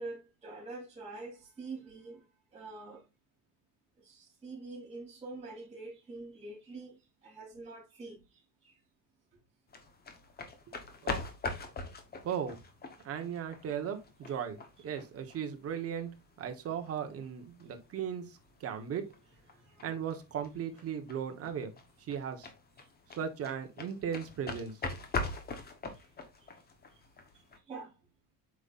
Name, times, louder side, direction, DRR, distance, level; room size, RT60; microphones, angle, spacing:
voice 1, 0.0-2.3 2.5-3.0 4.0-8.8 19.6-19.8 25.5-25.7 25.9-26.1 26.4-26.6 26.9-27.0 27.3-27.9, right 3 dB, 15° right, 3.2 m, -46 dB
sound 1, 9.7-27.6, left 3 dB, 25° left, 1.1 m, -42 dB
voice 2, 12.2-12.6 13.0-19.1 19.8-21.7 22.1-22.5 23.1-24.7, right 8 dB, 35° right, 1.3 m, -37 dB
7.9 x 5.5 x 2.5 m
cardioid pair, 165°, 40 cm